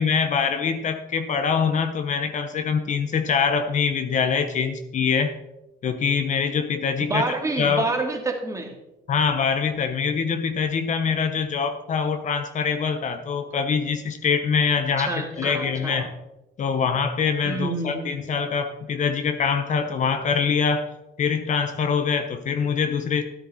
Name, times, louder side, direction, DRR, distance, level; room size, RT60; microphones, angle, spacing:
voice 1, 0.0-5.3 5.8-7.3 7.6-7.9 9.1-16.1 16.6-20.9 21.2-23.2, left 6 dB, 45° left, 8 dB, 1.0 m, -24 dB
voice 2, 7.0-8.7 15.0-16.1 17.4-18.2, right 3 dB, 20° right, 3 dB, 2.4 m, -28 dB
13.0 x 10.5 x 4.3 m, 0.94 s
cardioid pair, 110°, 17 cm